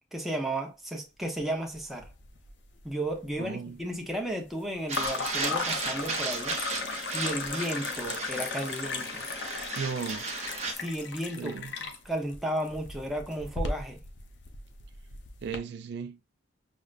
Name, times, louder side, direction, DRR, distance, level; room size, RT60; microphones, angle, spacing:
voice 1, 0.1-2.1 2.8-6.6 7.1-9.2 10.7-11.5 12.0-14.0, right 1 dB, ahead, 0.6 m, -33 dB
sound 1, 1.7-2.5 2.8-3.4 4.9-15.6, left 4 dB, 70° left, 0.6 m, -36 dB
voice 2, 3.4-3.8 9.7-10.3 11.4-11.9 15.4-16.2, right 5 dB, 60° right, 0.3 m, -36 dB
sound 2, 4.9-10.7, right 4 dB, 35° right, 0.7 m, -35 dB
6.2 x 2.1 x 2.4 m
head